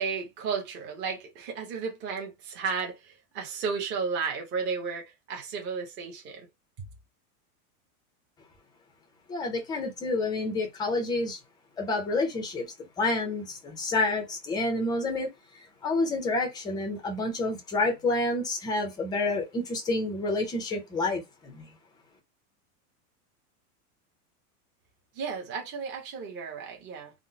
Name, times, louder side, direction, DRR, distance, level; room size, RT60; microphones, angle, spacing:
voice 1, 0.0-6.5 6.8-6.9 25.1-27.1, right 5 dB, 25° right, 0.8 m, -33 dB
voice 2, 9.3-11.4 11.8-12.7 13.0-15.3 15.8-21.7, left 2 dB, 10° left, 0.4 m, -29 dB
3.6 x 2.0 x 2.6 m
supercardioid pair, 155°, 45 cm